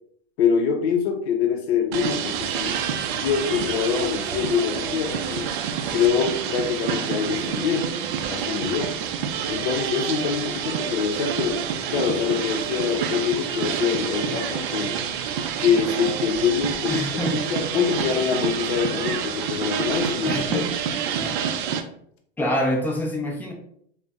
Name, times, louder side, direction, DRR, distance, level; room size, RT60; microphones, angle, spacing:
voice 1, 0.4-2.7 3.2-5.5 5.9-8.0 8.3-9.0 9.5-11.6 11.9-15.0 15.6-17.0 17.4-20.7, left 7 dB, 75° left, 3 dB, 0.6 m, -24 dB
sound 1, 1.9-21.8, right 8 dB, 55° right, 0.4 m, -28 dB
voice 2, 16.9-17.6 20.2-20.7 21.2-21.3 22.4-23.5, equal, 5° left, -1 dB, 0.4 m, -26 dB
2.5 x 2.1 x 3.4 m, 0.67 s
supercardioid pair, 130°, 32 cm